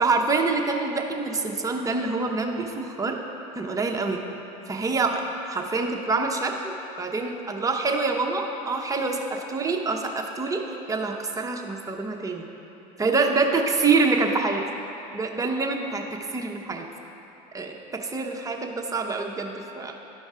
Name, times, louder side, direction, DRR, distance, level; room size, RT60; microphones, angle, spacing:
voice 1, 0.0-3.2 3.6-4.2 4.7-12.5 13.0-14.6 15.1-16.0 16.3-16.8 17.5-19.9, right 3 dB, 15° right, 1 dB, 0.9 m, -26 dB
12.5 x 5.2 x 3.7 m, 2.9 s
hypercardioid pair, 85°, 20 cm